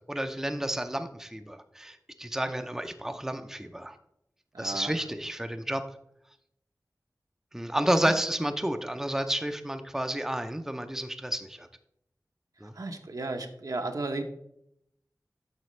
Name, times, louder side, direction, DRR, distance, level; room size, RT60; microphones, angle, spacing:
voice 1, 0.0-3.9 4.6-5.8 7.5-11.7 12.6-12.7, right 1 dB, 5° right, 7 dB, 0.5 m, -31 dB
voice 2, 4.5-4.9 8.0-8.1 12.8-14.2, right 2 dB, 65° right, 5 dB, 0.8 m, -34 dB
9.1 x 6.3 x 3.2 m, 0.77 s
wide cardioid pair, 60°, 7 cm